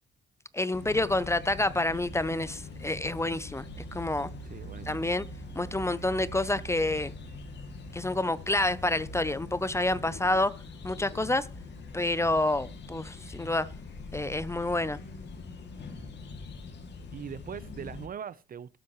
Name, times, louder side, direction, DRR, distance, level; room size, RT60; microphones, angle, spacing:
voice 1, 0.5-4.3 4.9-5.3 5.5-7.1 7.9-10.6 10.8-11.5 11.9-13.7 14.1-15.0, left 2 dB, 15° left, 0.6 m, -28 dB
sound 1, 0.7-18.1, left 2 dB, 60° left, 2.5 m, -43 dB
voice 2, 4.4-5.0 17.1-18.8, right 8 dB, 45° right, 0.7 m, -41 dB
19.0 x 7.6 x 3.1 m
cardioid pair, 90°, 20 cm